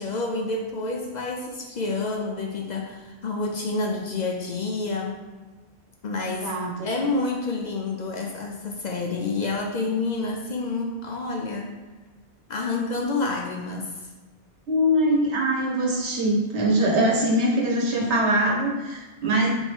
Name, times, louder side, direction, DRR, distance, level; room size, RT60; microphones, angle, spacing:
voice 1, 0.0-5.2 6.0-6.5 6.8-11.7 12.5-14.1, left 3 dB, 55° left, 0 dB, 0.5 m, -28 dB
voice 2, 14.7-19.5, right 1 dB, 80° right, -3 dB, 1.3 m, -22 dB
3.6 x 3.1 x 4.5 m, 1.2 s
omnidirectional pair, 1.1 m